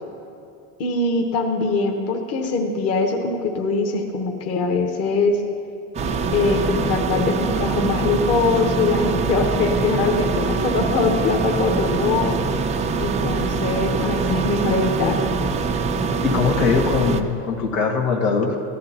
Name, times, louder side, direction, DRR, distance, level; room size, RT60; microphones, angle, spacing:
voice 1, 0.8-5.4 6.3-12.4 13.0-15.2, left 3 dB, 40° left, 2 dB, 1.1 m, -22 dB
sound 1, 5.9-17.2, right 4 dB, 20° right, 0.3 m, -23 dB
voice 2, 16.2-18.6, left 5 dB, 85° left, -2 dB, 1.7 m, -21 dB
14.5 x 11.5 x 2.9 m, 2.6 s
supercardioid pair, 120°, 40 cm